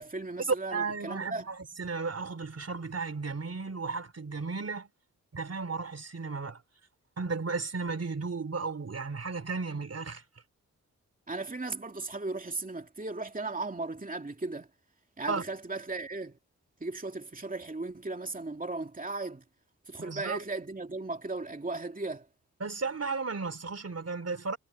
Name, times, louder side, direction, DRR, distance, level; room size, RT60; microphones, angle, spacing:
voice 1, 0.0-1.5 11.3-14.7 15.2-16.3 16.8-19.4 19.9-22.3, right 3 dB, 25° right, 2.5 m, -36 dB
voice 2, 0.7-4.9 5.3-6.6 7.2-10.2 15.3-15.4 20.0-20.4 22.6-24.6, right 4 dB, 50° right, 3.1 m, -34 dB
cardioid pair, 60°, 32 cm